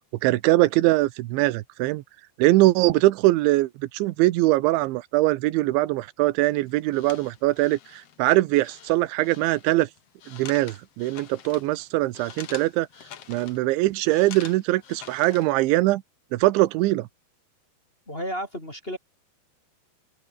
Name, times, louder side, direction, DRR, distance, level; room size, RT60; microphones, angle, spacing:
voice 1, 0.2-2.0 2.4-9.9 10.3-12.9 13.3-16.0 16.3-17.1, right 18 dB, 80° right, 3.3 m, -22 dB
sound 1, 6.4-15.7, left 9 dB, 65° left, 1.5 m, -46 dB
voice 2, 18.1-19.0, equal, 10° left, 4.0 m, -32 dB
open air
omnidirectional pair, 5.5 m